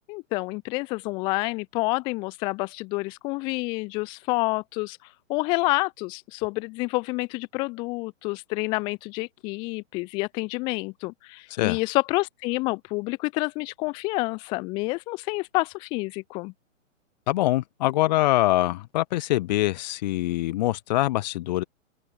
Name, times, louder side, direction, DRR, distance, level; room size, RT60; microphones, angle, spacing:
voice 1, 0.1-16.5, left 24 dB, 10° left, 0.6 m, -28 dB
voice 2, 17.3-21.6, left 16 dB, 35° left, 1.6 m, -24 dB
open air
figure-of-eight pair, 120°, 39 cm